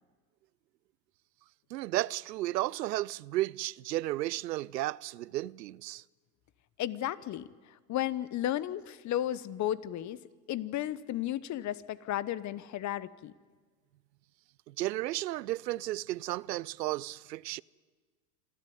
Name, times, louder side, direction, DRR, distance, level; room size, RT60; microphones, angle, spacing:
voice 1, 1.7-6.0 14.8-17.6, right 16 dB, 90° right, 0.6 m, -33 dB
voice 2, 6.8-7.5 7.9-10.2 10.5-13.3, left 12 dB, 35° left, 1.0 m, -33 dB
26.5 x 13.5 x 9.5 m
hypercardioid pair, 100°, 48 cm